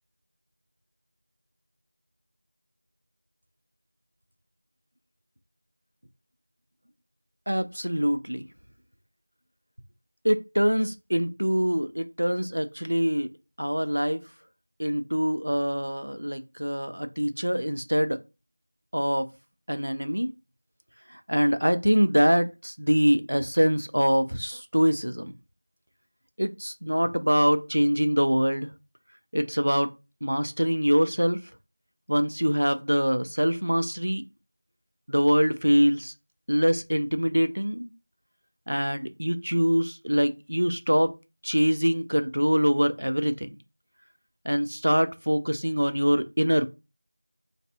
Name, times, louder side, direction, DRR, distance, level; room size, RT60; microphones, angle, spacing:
voice 1, 7.5-8.4 10.2-13.3 13.6-14.2 14.8-18.2 18.9-19.3 19.7-20.3 21.1-25.3 26.4-28.7 29.3-29.9 30.2-31.4 32.1-34.2 35.1-36.1 36.5-37.9 38.7-41.1 41.4-43.5 44.4-46.7, equal, 60° right, 0.4 m, -24 dB
2.5 x 2.0 x 3.3 m
figure-of-eight pair, 180°, 0 cm